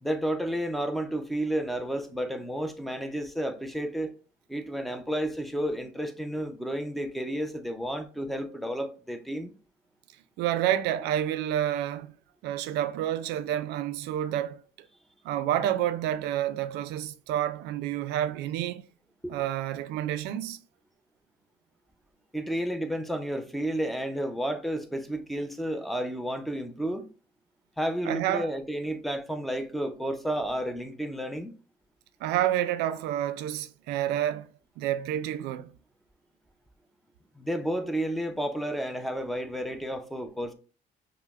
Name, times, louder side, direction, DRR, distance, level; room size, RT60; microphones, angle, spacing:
voice 1, 0.0-4.1 4.5-9.5 19.2-19.3 22.3-27.1 27.8-31.5 37.4-40.5, right 1 dB, ahead, 0.4 m, -31 dB
voice 2, 10.4-12.1 12.4-14.6 15.2-18.9 19.3-20.6 28.0-28.5 32.2-34.5 34.8-35.7, right 11 dB, 90° right, 0.4 m, -29 dB
5.5 x 2.0 x 2.3 m
cardioid pair, 110°, 17 cm